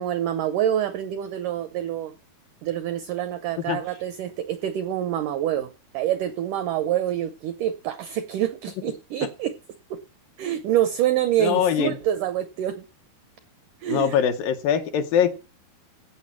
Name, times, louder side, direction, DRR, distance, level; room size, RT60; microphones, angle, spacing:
voice 1, 0.0-2.1 2.6-5.7 5.9-9.5 9.9-10.0 10.4-12.8 13.8-14.2, right 11 dB, 85° right, 1.8 m, -26 dB
voice 2, 11.4-12.0 13.9-15.3, left 8 dB, 75° left, 2.3 m, -22 dB
16.0 x 8.4 x 6.0 m
omnidirectional pair, 4.6 m